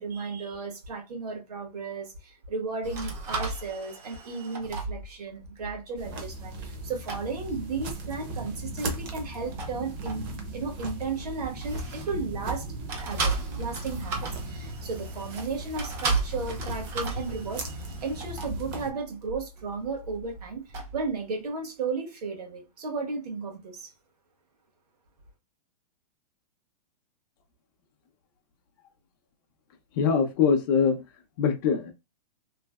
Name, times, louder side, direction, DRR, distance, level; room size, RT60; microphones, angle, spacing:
voice 1, 0.0-10.3 10.5-12.7 13.0-23.9, right 4 dB, 75° right, 1.4 m, -34 dB
sound 1, 2.8-6.8 7.1-7.3 9.3-12.5 12.9-21.1, right 3 dB, 10° right, 0.3 m, -35 dB
sound 2, 6.0-18.9, right 1 dB, 35° right, 0.8 m, -37 dB
voice 2, 29.9-31.0 31.4-31.9, left 6 dB, 35° left, 0.6 m, -23 dB
3.2 x 2.6 x 2.3 m
hypercardioid pair, 165°, 20 cm